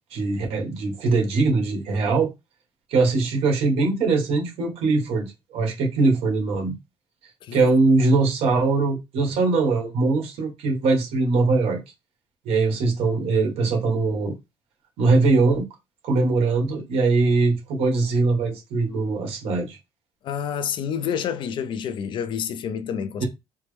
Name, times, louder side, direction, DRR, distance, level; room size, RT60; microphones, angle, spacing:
voice 1, 0.1-2.3 2.9-6.7 7.5-11.8 12.4-14.3 15.0-15.7 16.0-19.8 23.2-23.3, right 3 dB, 70° right, 1.6 m, -21 dB
voice 2, 20.2-23.2, left 8 dB, 50° left, 0.4 m, -28 dB
4.3 x 2.1 x 3.4 m
cardioid pair, 140°, 11 cm